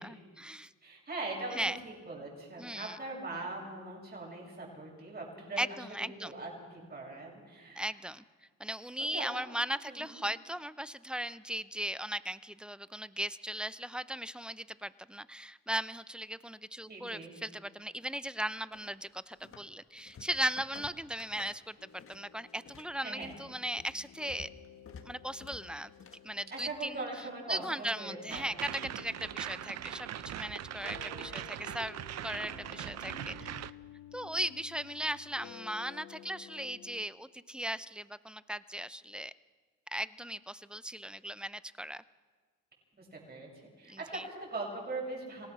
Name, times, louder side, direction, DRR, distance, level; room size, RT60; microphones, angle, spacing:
voice 1, 0.0-0.7 1.5-1.8 2.6-3.0 5.6-6.4 7.8-8.2 8.6-24.5 25.1-25.9 26.2-27.0 27.5-33.5 34.1-39.3 39.9-42.0 43.9-44.2, equal, 5° right, 16 dB, 0.5 m, -38 dB
voice 2, 0.8-7.9 9.1-9.3 9.8-10.0 16.9-17.3 23.0-23.3 26.5-28.5 43.0-45.5, right 2 dB, 30° right, -2 dB, 7.6 m, -41 dB
sound 1, 18.7-19.7 20.0-22.2 22.5-26.9, left 6 dB, 45° left, 1.7 m, -53 dB
sound 2, 21.8-37.1, left 9 dB, 80° left, 1.2 m, -53 dB
sound 3, 28.3-33.7, right 12 dB, 60° right, 0.6 m, -41 dB
26.0 x 17.5 x 6.2 m, 1.5 s
cardioid pair, 90°, 30 cm